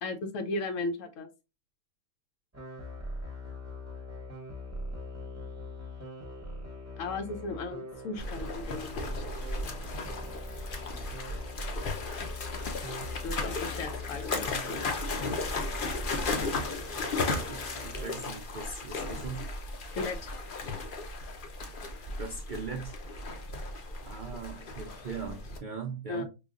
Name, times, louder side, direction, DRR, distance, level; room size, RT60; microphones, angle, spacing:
voice 1, 0.0-1.3 7.0-9.2 13.2-14.8 19.9-20.3 26.1-26.2, left 3 dB, 70° left, 8 dB, 1.0 m, -36 dB
sound 1, 2.5-18.2, left 1 dB, 15° right, 0.5 m, -42 dB
sound 2, 8.2-25.6, left 3 dB, 50° left, 0.7 m, -35 dB
voice 2, 17.5-19.5 22.2-23.0 24.1-26.2, right 5 dB, 70° right, 2 dB, 0.4 m, -40 dB
5.0 x 2.3 x 2.4 m, 0.28 s
omnidirectional pair, 1.5 m